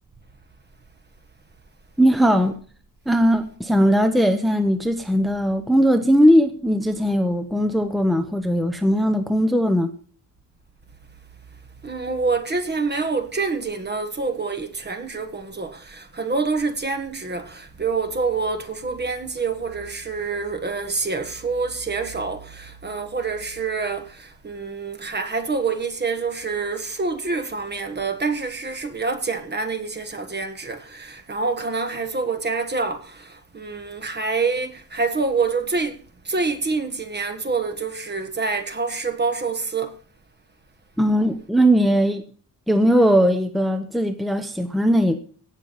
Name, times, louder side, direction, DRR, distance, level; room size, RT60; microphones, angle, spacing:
voice 1, 2.0-2.5 3.1-9.9 41.0-42.2 42.7-45.2, equal, ahead, 0.9 m, -19 dB
voice 2, 11.8-39.9, right 4 dB, 30° right, 1.5 m, -26 dB
17.5 x 6.8 x 5.7 m
wide cardioid pair, 150°, 34 cm